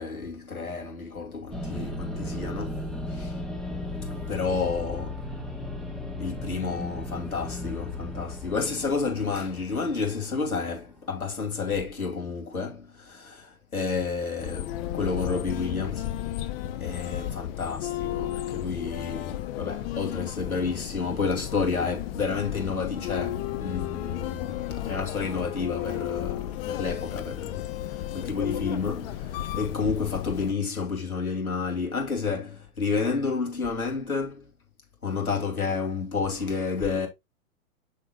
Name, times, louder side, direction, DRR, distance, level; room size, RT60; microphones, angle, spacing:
voice 1, 0.0-3.4 4.3-5.2 6.2-16.2 16.8-34.5 35.0-37.1, left 4 dB, 90° left, 2.9 m, -30 dB
sound 1, 1.5-11.0, left 2 dB, ahead, 1.2 m, -36 dB
sound 2, 14.4-30.5, left 12 dB, 40° left, 0.8 m, -33 dB
6.9 x 6.6 x 2.3 m
figure-of-eight pair, 105°, 42 cm